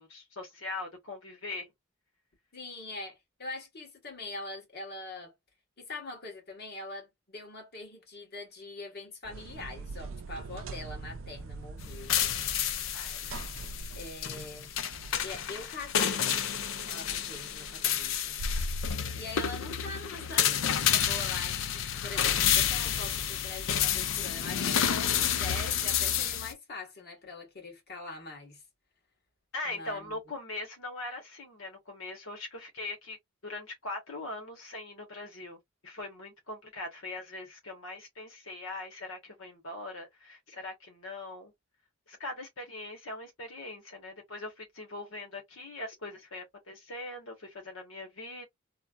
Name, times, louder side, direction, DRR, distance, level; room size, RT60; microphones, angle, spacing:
voice 1, 0.0-1.7 12.9-13.4 29.5-33.2 33.4-41.5 42.1-48.4, left 2 dB, 90° left, 1.1 m, -41 dB
voice 2, 2.5-5.3 5.8-12.2 13.9-14.7 15.2-16.3 16.9-18.6 19.1-28.6 29.6-30.2, left 3 dB, 55° left, 1.5 m, -43 dB
sound 1, 9.2-18.9, right 1 dB, 75° right, 0.5 m, -41 dB
sound 2, 11.8-26.5, left 9 dB, 70° left, 0.4 m, -30 dB
3.1 x 2.1 x 2.4 m
head